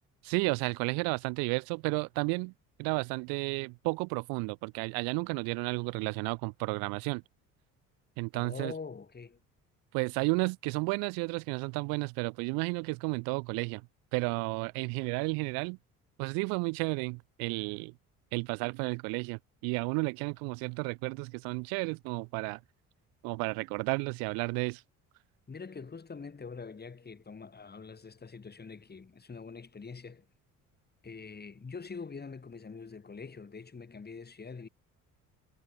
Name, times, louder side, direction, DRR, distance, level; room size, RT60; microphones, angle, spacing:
voice 1, 0.2-2.5 2.8-7.2 8.2-8.7 9.9-13.8 14.1-15.8 16.2-17.9 18.3-22.6 23.2-24.8, right 32 dB, 55° right, 0.6 m, -32 dB
voice 2, 8.3-9.4 25.5-30.3 31.0-34.7, left 5 dB, 20° left, 2.9 m, -44 dB
figure-of-eight pair, 50°, 44 cm